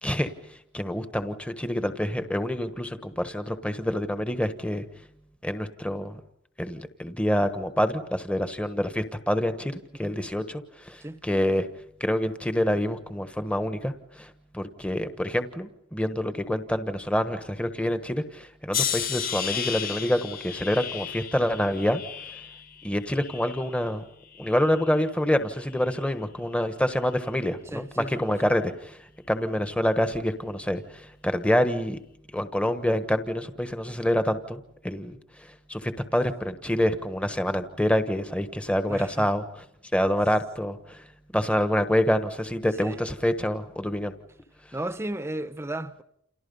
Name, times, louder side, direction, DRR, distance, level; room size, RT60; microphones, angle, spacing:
voice 1, 0.0-4.8 5.4-6.2 6.6-11.7 12.0-22.0 22.8-24.0 24.4-32.0 32.3-39.4 39.9-41.1 41.3-44.1, equal, 5° left, 1.2 m, -27 dB
sound 1, 18.7-23.9 24.3-25.0 25.7-26.0, left 8 dB, 45° left, 1.5 m, -34 dB
voice 2, 27.7-28.5 38.9-39.3 42.8-43.0 44.7-46.0, right 1 dB, 15° right, 1.0 m, -34 dB
30.0 x 28.5 x 5.5 m
head